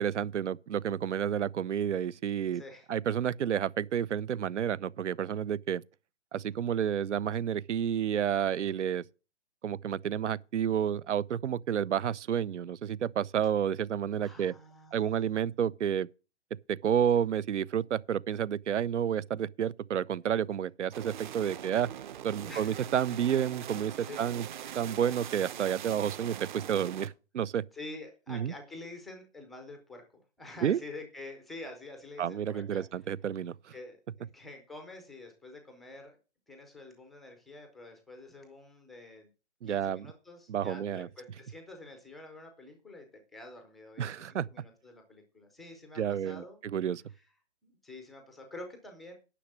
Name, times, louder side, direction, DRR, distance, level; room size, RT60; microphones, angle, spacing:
voice 1, 0.0-2.6 2.9-5.8 6.3-9.0 9.6-14.5 14.9-16.1 16.7-21.9 22.2-24.4 24.7-27.6 28.3-28.5 30.6-30.8 32.2-33.5 39.6-40.1 40.5-41.1 44.0-44.5 46.0-46.4 46.7-47.0, right 9 dB, 80° right, 0.7 m, -30 dB
voice 2, 2.5-2.9 14.2-15.4 22.4-22.8 24.0-24.3 27.7-32.8 33.7-36.2 36.5-39.3 39.6-46.6 47.1-47.3 47.6-49.1, left 2 dB, ahead, 0.4 m, -48 dB
sound 1, 20.9-27.1, right 10 dB, 40° right, 0.9 m, -42 dB
10.0 x 6.2 x 7.3 m
hypercardioid pair, 150°, 36 cm